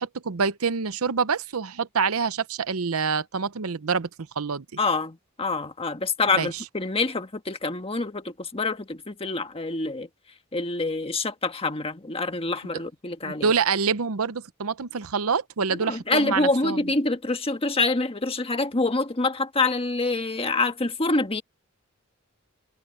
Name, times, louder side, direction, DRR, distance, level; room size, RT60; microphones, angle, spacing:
voice 1, 0.0-4.1 4.4-4.6 6.3-6.6 13.2-16.9, right 5 dB, 85° right, 0.8 m, -26 dB
voice 2, 4.8-10.1 10.5-13.5 15.7-21.4, left 3 dB, 25° left, 1.5 m, -26 dB
head